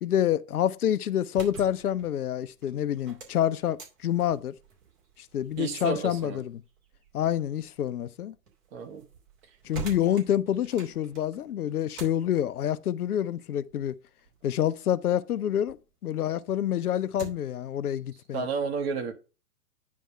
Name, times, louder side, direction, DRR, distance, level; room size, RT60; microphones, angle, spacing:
voice 1, 0.0-4.5 5.3-6.6 7.1-8.3 9.6-14.0 14.4-15.8 16.0-18.5, left 10 dB, 70° left, 0.6 m, -27 dB
sound 1, 1.2-15.8 16.2-17.6, right 6 dB, 55° right, 3.1 m, -48 dB
voice 2, 5.6-6.4 8.7-9.1 18.3-19.1, right 5 dB, 40° right, 1.6 m, -31 dB
9.4 x 3.4 x 6.2 m
figure-of-eight pair, 120°, 47 cm